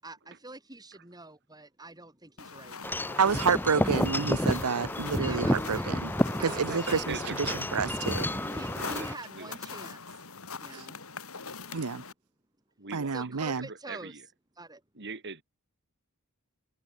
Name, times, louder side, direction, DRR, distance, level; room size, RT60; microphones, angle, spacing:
voice 1, 0.0-3.0 5.3-6.0 6.4-7.1 8.5-10.0 10.6-11.0 13.1-14.1 14.6-15.1, right 2 dB, 15° right, 6.9 m, -45 dB
sound 1, 2.4-12.1, left 5 dB, 70° left, 5.2 m, -43 dB
Wind chime / Wind, 2.8-9.1, left 1 dB, 10° left, 1.8 m, -31 dB
voice 2, 3.2-6.1 6.4-8.3 10.7-10.9 11.7-12.0 12.9-13.7, right 5 dB, 90° right, 0.8 m, -29 dB
voice 3, 6.3-8.3 8.7-9.1 9.3-9.6 12.8-14.3 14.9-15.4, right 4 dB, 50° right, 3.6 m, -43 dB
head